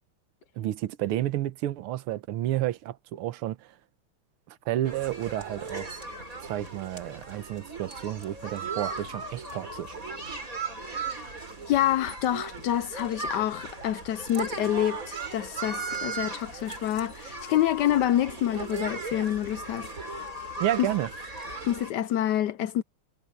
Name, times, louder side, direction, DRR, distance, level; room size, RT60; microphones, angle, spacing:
voice 1, 0.6-3.7 4.5-5.9 6.4-10.0 20.6-21.1, right 13 dB, 80° right, 1.8 m, -31 dB
sound 1, 4.8-21.9, right 4 dB, 35° right, 4.9 m, -37 dB
voice 2, 11.7-19.9 21.6-22.8, left 12 dB, 80° left, 0.9 m, -27 dB
omnidirectional pair, 2.4 m